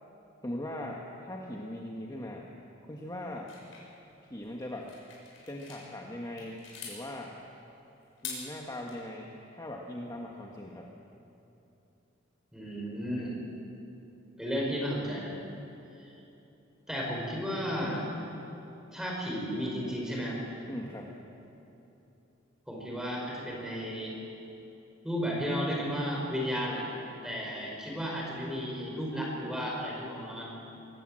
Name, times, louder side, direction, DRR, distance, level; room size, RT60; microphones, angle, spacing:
voice 1, 0.4-2.5 2.9-3.5 4.3-4.9 5.5-7.4 8.2-10.9 20.7-21.1, left 1 dB, 20° left, 0 dB, 1.4 m, -40 dB
sound 1, 3.5-5.8 6.2-7.0 8.0-8.9, left 5 dB, 80° left, 6.0 m, -44 dB
voice 2, 12.5-13.4 14.4-15.3 16.0-16.1 16.9-18.1 18.9-20.4 22.7-24.1 25.0-26.9 27.2-30.5, equal, 5° right, -2 dB, 4.9 m, -33 dB
23.0 x 17.5 x 7.6 m, 3.0 s
head